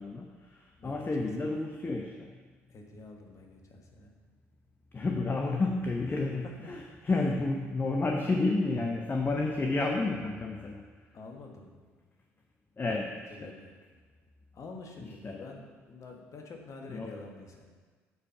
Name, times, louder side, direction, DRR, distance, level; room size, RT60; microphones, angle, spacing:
voice 1, 0.0-2.3 4.9-10.8 12.8-13.5 15.2-15.4 16.9-17.1, left 3 dB, 30° left, 1 dB, 0.9 m, -31 dB
voice 2, 0.8-1.6 2.7-4.1 6.1-7.0 11.1-11.8 13.3-13.7 14.5-17.7, left 3 dB, 50° left, 2 dB, 1.4 m, -47 dB
8.7 x 4.5 x 5.6 m, 1.5 s
hypercardioid pair, 55°, 7 cm